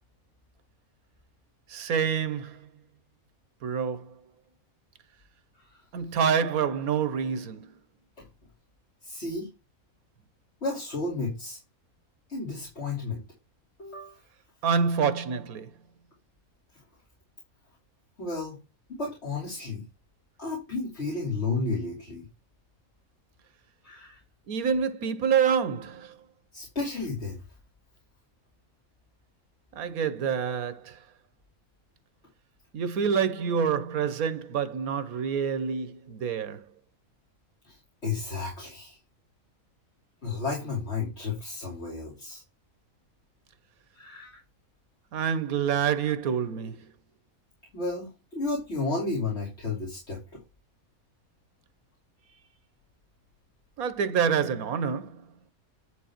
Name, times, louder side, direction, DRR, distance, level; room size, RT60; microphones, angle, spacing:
voice 1, 1.7-2.7 3.6-4.1 5.9-7.7 14.6-15.7 24.5-26.2 29.7-31.0 32.7-36.6 45.1-46.9 53.8-55.2, right 7 dB, 80° right, 1.4 m, -27 dB
voice 2, 9.0-9.5 10.6-11.6 12.3-13.2 13.8-14.2 18.2-18.6 18.9-19.8 20.4-22.3 23.8-24.2 26.5-27.4 37.6-37.8 38.0-39.0 40.2-42.4 43.9-44.4 47.7-50.2, left 3 dB, 50° left, 3.1 m, -32 dB
10.5 x 3.9 x 4.4 m
omnidirectional pair, 1.5 m